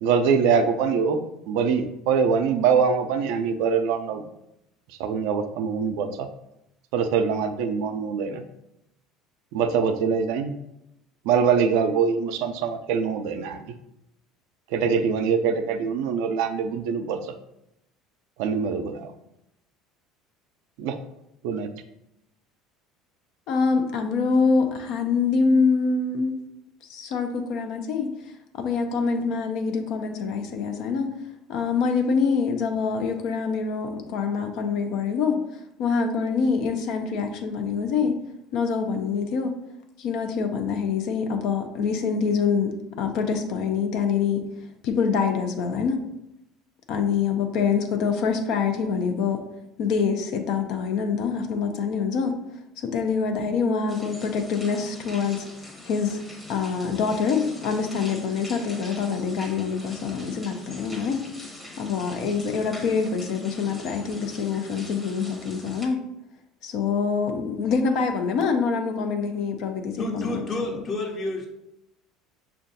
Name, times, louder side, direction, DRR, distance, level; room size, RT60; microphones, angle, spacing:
voice 1, 0.0-1.2 1.5-4.2 5.0-6.3 6.9-8.4 9.5-10.5 11.3-13.7 14.7-17.2 18.4-19.1 20.8-21.0 21.4-21.7, right 6 dB, 70° right, 8 dB, 0.3 m, -23 dB
voice 2, 23.5-26.3 26.9-28.1 28.6-31.1 31.5-35.4 35.8-38.2 38.5-39.5 40.0-44.4 44.8-46.0 46.9-49.4 49.8-52.4 52.8-56.2 56.5-61.2 61.8-66.1 66.6-70.5, left 5 dB, 65° left, 5 dB, 0.4 m, -25 dB
sound 1, 53.9-65.9, left 1 dB, 10° left, 0.9 m, -43 dB
voice 3, 70.0-71.5, left 2 dB, 40° left, 1 dB, 0.9 m, -30 dB
5.4 x 2.3 x 2.6 m, 0.84 s
hypercardioid pair, 75°, 0 cm